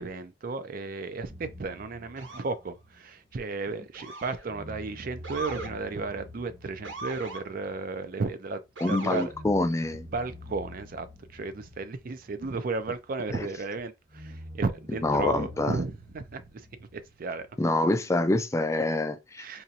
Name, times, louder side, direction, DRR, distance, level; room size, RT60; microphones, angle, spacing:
voice 1, 0.0-8.6 8.9-9.3 10.1-17.5 19.4-19.6, right 3 dB, 50° right, 0.4 m, -34 dB
sound 1, 1.3-4.1 4.5-8.7 9.3-13.4 14.1-18.1, left 1 dB, 10° right, 0.9 m, -47 dB
Motor vehicle (road) / Siren, 2.2-2.5 3.9-4.5 5.2-5.7 6.8-7.4 8.8-9.3, right 2 dB, 85° right, 0.8 m, -38 dB
voice 2, 8.8-10.1 13.3-13.5 15.0-15.8 17.6-19.6, left 2 dB, 15° left, 0.3 m, -26 dB
4.2 x 2.5 x 2.7 m
head